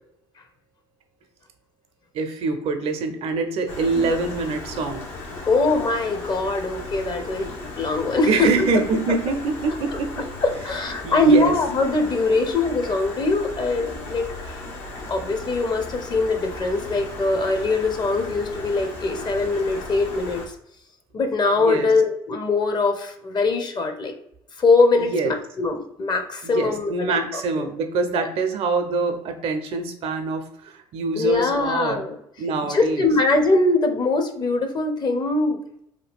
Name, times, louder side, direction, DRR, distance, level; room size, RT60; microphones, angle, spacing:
voice 1, 2.1-5.1 8.2-10.3 11.0-11.5 21.6-21.9 25.0-25.3 26.4-32.0 32.4-33.1, right 4 dB, 60° right, 7 dB, 0.5 m, -25 dB
Stream, 3.7-20.5, left 2 dB, 75° left, 0.8 m, -36 dB
voice 2, 5.5-8.7 10.4-14.6 15.1-20.5 21.1-24.1 24.6-27.7 31.1-32.2 32.7-35.6, left 3 dB, 40° left, 6 dB, 0.6 m, -22 dB
2.6 x 2.3 x 3.4 m, 0.73 s
hypercardioid pair, 60°, 12 cm